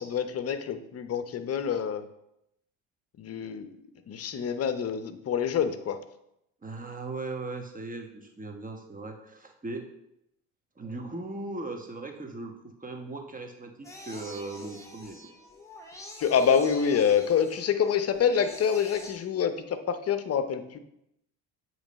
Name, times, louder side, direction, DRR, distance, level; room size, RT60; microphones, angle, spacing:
voice 1, 0.0-2.0 3.2-3.7 4.1-6.0 16.2-20.8, left 7 dB, 40° left, 10 dB, 0.8 m, -26 dB
voice 2, 6.6-9.9 10.8-12.5 12.8-15.2, right 2 dB, 20° right, 3 dB, 1.2 m, -38 dB
sound 1, 13.8-19.1, left 1 dB, 5° left, 1.8 m, -46 dB
8.2 x 3.2 x 5.2 m, 0.81 s
hypercardioid pair, 65°, 40 cm